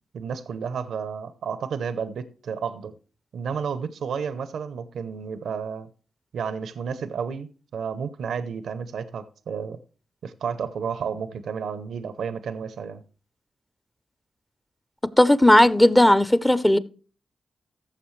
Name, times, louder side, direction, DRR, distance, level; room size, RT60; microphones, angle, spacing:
voice 1, 0.1-2.9 3.3-5.9 6.3-9.8 10.2-13.0, right 6 dB, 85° right, 0.6 m, -31 dB
voice 2, 15.2-16.8, left 1 dB, 10° left, 0.6 m, -16 dB
14.5 x 6.7 x 3.2 m
cardioid pair, 55°, 0 cm